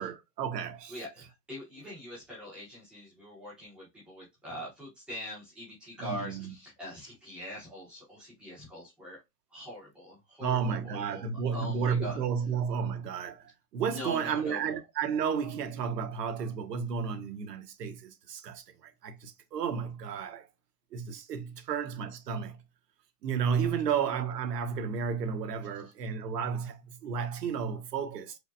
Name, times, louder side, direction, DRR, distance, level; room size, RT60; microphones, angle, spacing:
voice 1, 0.0-0.9 6.0-6.5 10.4-13.4 13.7-18.6 19.0-20.4 20.9-22.6 23.2-28.4, right 6 dB, 90° right, 1.1 m, -32 dB
voice 2, 0.9-9.2 9.5-12.2 13.8-14.7, equal, ahead, 0.7 m, -43 dB
4.8 x 2.1 x 2.6 m
supercardioid pair, 180°, 47 cm